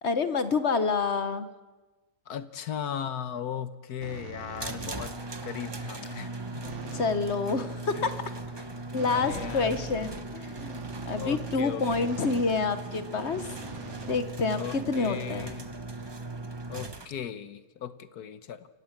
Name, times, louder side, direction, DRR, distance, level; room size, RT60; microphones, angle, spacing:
voice 1, 0.0-1.5 4.8-4.9 6.9-8.2 8.9-10.8 11.0-13.4 14.1-15.5, left 4 dB, 45° left, 11 dB, 1.2 m, -28 dB
voice 2, 2.3-5.1 5.4-6.6 7.9-8.1 9.0-9.8 11.1-12.1 14.5-15.7 16.7-18.7, left 8 dB, 70° left, 12 dB, 1.5 m, -37 dB
sound 1, 4.0-5.2 6.6-7.3 9.0-12.6 13.3-14.8, right 4 dB, 45° right, 1.7 m, -43 dB
sound 2, 4.6-17.1, right 2 dB, 20° right, 0.8 m, -38 dB
29.0 x 17.0 x 7.3 m, 1.2 s
omnidirectional pair, 1.8 m